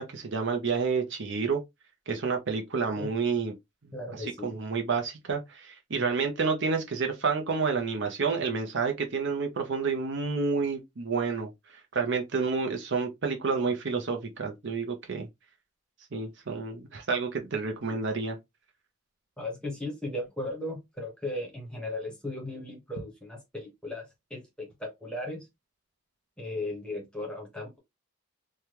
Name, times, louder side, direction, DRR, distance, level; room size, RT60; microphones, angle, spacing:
voice 1, 0.0-1.6 2.1-3.5 4.2-11.5 11.9-15.3 16.1-18.4, right 4 dB, 55° right, 0.6 m, -29 dB
voice 2, 3.9-4.5 19.4-25.5 26.4-27.8, left 1 dB, 5° left, 1.0 m, -36 dB
3.3 x 2.2 x 2.9 m
head